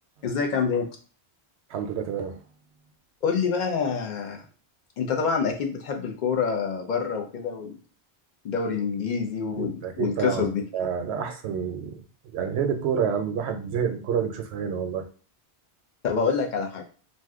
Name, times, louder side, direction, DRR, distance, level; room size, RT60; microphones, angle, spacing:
voice 1, 0.2-0.9 3.2-4.4 5.0-7.8 8.4-10.6 16.0-16.8, left 5 dB, 55° left, 4 dB, 0.6 m, -26 dB
voice 2, 1.7-2.4 9.6-10.5 10.7-12.0 12.3-15.0, right 7 dB, 80° right, 6 dB, 0.8 m, -28 dB
2.6 x 2.1 x 3.5 m, 0.38 s
omnidirectional pair, 1.1 m